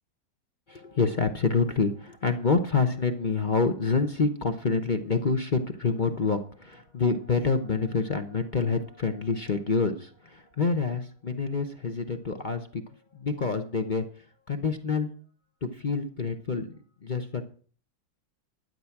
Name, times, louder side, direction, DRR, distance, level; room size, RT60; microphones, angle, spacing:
voice 1, 0.7-12.8 13.1-14.0 14.5-15.1 15.6-16.7 17.0-17.4, left 4 dB, 40° left, 7 dB, 0.7 m, -27 dB
12.5 x 9.8 x 5.9 m, 0.43 s
omnidirectional pair, 2.2 m